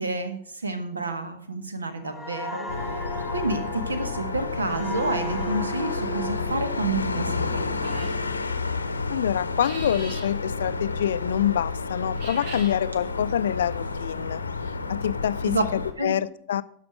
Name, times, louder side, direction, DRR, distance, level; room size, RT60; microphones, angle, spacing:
voice 1, 0.0-2.7 3.3-8.1 15.5-15.6 16.0-16.1, right 2 dB, 75° right, 10 dB, 1.1 m, -29 dB
sound 1, 2.0-9.5 9.9-10.2, equal, ahead, 1.9 m, -38 dB
sound 2, 2.7-15.9, left 4 dB, 80° left, 0.8 m, -30 dB
sound 3, 7.8-8.2 9.5-10.3 12.0-12.8, right 2 dB, 50° right, 2.3 m, -40 dB
voice 2, 9.1-14.4 14.9-16.6, left 10 dB, 65° left, 16 dB, 0.4 m, -26 dB
12.5 x 5.1 x 5.1 m, 0.65 s
figure-of-eight pair, 90°, 0 cm